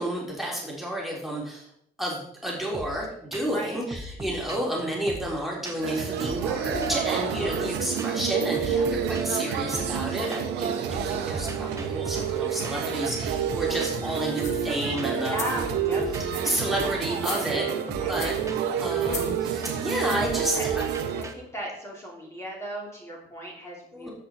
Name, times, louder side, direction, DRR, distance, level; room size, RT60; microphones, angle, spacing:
voice 1, 0.0-1.7 2.0-15.4 16.4-17.7 18.1-18.3 18.8-20.8 23.9-24.1, right 1 dB, ahead, -3 dB, 3.5 m, -31 dB
sound 1, 2.7-3.1 3.3-3.6 3.9-6.0 6.2-7.7 8.0-8.3 8.6-10.6 10.9-21.3, right 1 dB, 15° right, 1.4 m, -41 dB
voice 2, 3.4-3.8 7.0-7.3 8.7-8.9 15.1-16.0 17.2-17.6 18.0-18.3 20.4-20.7 21.2-24.1, right 1 dB, 15° left, -3 dB, 3.3 m, -36 dB
sound 2, 5.8-21.2, right 7 dB, 85° right, 1.3 m, -29 dB
sound 3, 14.3-14.7 15.2-15.7 16.2-16.6 17.1-17.8 18.2-18.5 19.0-19.4 20.1-20.4 21.0-21.1, left 5 dB, 40° left, 1.6 m, -38 dB
10.5 x 8.0 x 4.4 m, 0.71 s
cardioid pair, 110°, 17 cm